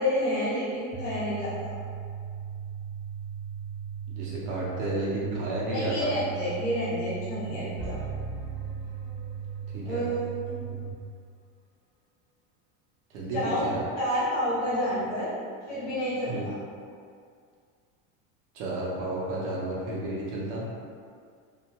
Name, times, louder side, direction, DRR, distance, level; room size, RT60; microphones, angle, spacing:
voice 1, 0.0-1.5 5.7-8.0 9.8-10.5 13.3-13.6 14.0-15.3 15.7-16.6, equal, 45° left, -9 dB, 1.0 m, -29 dB
sound 1, 0.9-10.9, right 7 dB, 20° right, 0.6 m, -37 dB
voice 2, 4.1-6.1 9.7-10.0 10.7-10.8 13.1-13.8 16.3-16.5 18.5-20.6, right 1 dB, 75° right, -5 dB, 0.8 m, -32 dB
sound 2, 7.8-9.9, right 2 dB, 15° left, 0.8 m, -40 dB
2.6 x 2.2 x 2.9 m, 2.2 s
cardioid pair, 175°, 37 cm